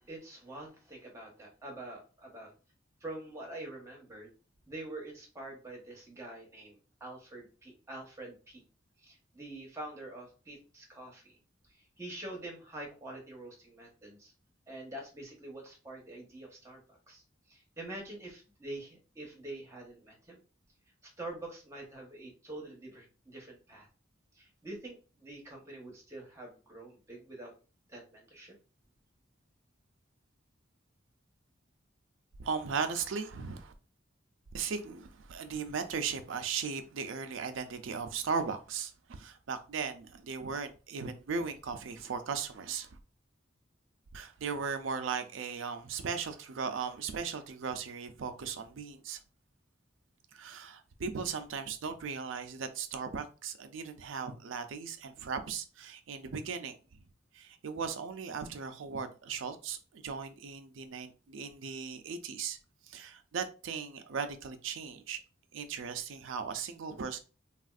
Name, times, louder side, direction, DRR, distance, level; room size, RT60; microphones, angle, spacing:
voice 1, 0.0-2.5 3.0-4.3 4.7-8.6 9.0-11.4 11.7-14.3 14.7-20.4 21.0-23.9 24.3-27.5 27.9-28.5, right 1 dB, 15° right, 0.9 m, -46 dB
voice 2, 32.4-33.7 34.5-43.0 44.1-49.2 50.3-56.8 57.3-62.6 62.8-65.2 65.5-67.2, right 5 dB, 80° right, 0.4 m, -37 dB
3.4 x 2.4 x 2.4 m
head